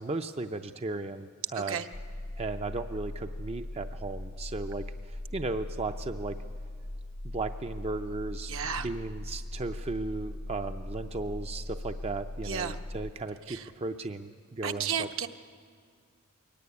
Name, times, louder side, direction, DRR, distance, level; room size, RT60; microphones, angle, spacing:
voice 1, 0.0-1.8 2.4-6.4 7.3-15.1, right 3 dB, 30° right, 7 dB, 0.5 m, -36 dB
sound 1, 1.9-13.1, left 1 dB, 40° left, 0.6 m, -40 dB
voice 2, 8.5-8.9 12.4-12.8 13.5-13.6 14.6-15.3, right 7 dB, 65° right, 6 dB, 0.9 m, -32 dB
22.5 x 17.0 x 9.5 m, 2.1 s
head